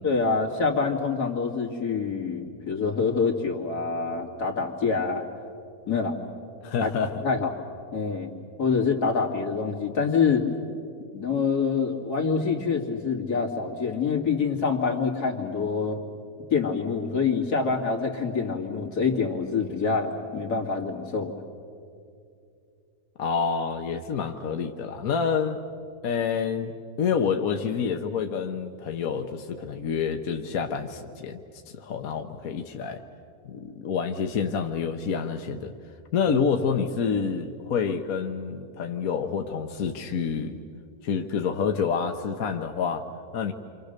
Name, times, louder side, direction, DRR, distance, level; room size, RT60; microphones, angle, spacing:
voice 1, 0.0-5.2 5.9-6.2 6.8-6.9 7.2-7.5 7.9-8.3 8.6-10.5 11.1-16.0 16.5-21.4, left 5 dB, 90° left, 1 dB, 2.9 m, -26 dB
voice 2, 6.6-7.1 23.2-25.6 26.0-26.7 27.0-31.4 31.7-33.0 33.5-35.7 36.1-40.6 41.0-43.5, left 6 dB, 65° left, 5 dB, 1.4 m, -28 dB
29.0 x 26.0 x 6.7 m, 2.4 s
omnidirectional pair, 1.6 m